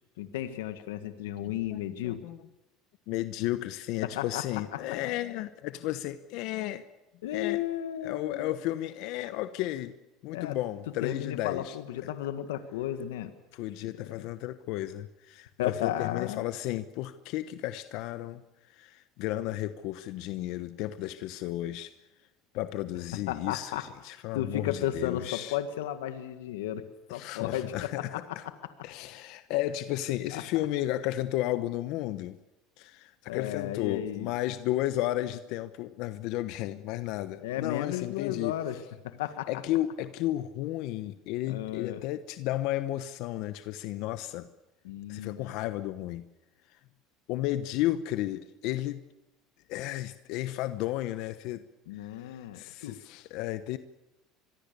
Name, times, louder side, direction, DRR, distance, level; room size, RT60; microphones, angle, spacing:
voice 1, 0.2-2.2 4.0-4.4 4.7-5.0 7.2-8.6 10.3-10.6 11.0-13.3 13.9-14.3 15.6-16.5 23.3-26.8 27.1-28.5 30.3-30.4 33.3-34.3 37.4-38.8 39.0-39.5 41.4-42.0 44.8-45.4 51.9-53.0, left 12 dB, 90° left, 9 dB, 1.8 m, -34 dB
voice 2, 1.4-2.4 3.1-6.8 7.3-7.6 8.0-9.9 10.2-11.8 13.5-18.4 18.7-21.9 22.5-25.6 27.1-28.4 28.8-32.4 32.8-38.5 39.5-44.5 45.1-46.2 47.3-49.0 49.7-51.6 52.2-53.8, left 15 dB, 70° left, 11 dB, 1.1 m, -33 dB
25.0 x 22.5 x 6.9 m, 0.95 s
supercardioid pair, 100°, 0 cm